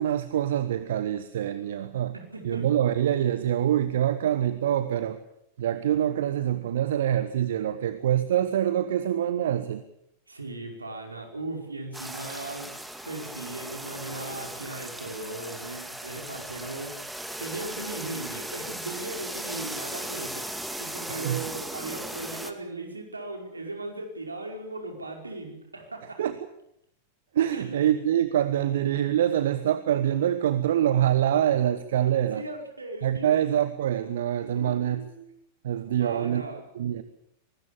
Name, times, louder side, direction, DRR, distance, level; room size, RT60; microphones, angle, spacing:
voice 1, 0.0-2.1 2.4-5.2 5.6-9.8 21.1-21.4 26.2-26.4 27.3-32.4 33.0-35.0 35.6-36.4 36.7-37.0, right 11 dB, 60° right, 12 dB, 1.2 m, -25 dB
voice 2, 2.1-2.8 10.3-12.7 13.0-17.0 17.4-26.2 27.5-28.0 32.3-33.3 34.6-35.3 36.0-36.6, right 2 dB, 80° right, 2 dB, 5.1 m, -38 dB
sound 1, 11.9-22.5, right 1 dB, 5° right, 2.2 m, -37 dB
24.0 x 20.0 x 7.3 m, 0.78 s
figure-of-eight pair, 90°, 0 cm